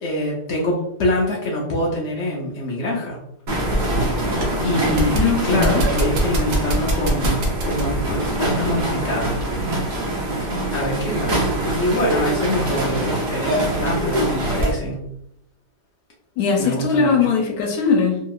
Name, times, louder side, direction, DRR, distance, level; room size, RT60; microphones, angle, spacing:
voice 1, 0.0-3.2 4.6-9.3 10.7-15.0 16.6-17.2, left 1 dB, 85° left, -3 dB, 0.6 m, -25 dB
sound 1, 3.5-14.7, right 1 dB, 85° right, 0.4 m, -24 dB
sound 2, 3.6-9.7, right 1 dB, 65° right, 0.9 m, -26 dB
voice 2, 5.1-5.8 16.4-18.2, left 5 dB, 70° left, 1 dB, 1.0 m, -20 dB
2.8 x 2.7 x 2.3 m, 0.78 s
omnidirectional pair, 1.9 m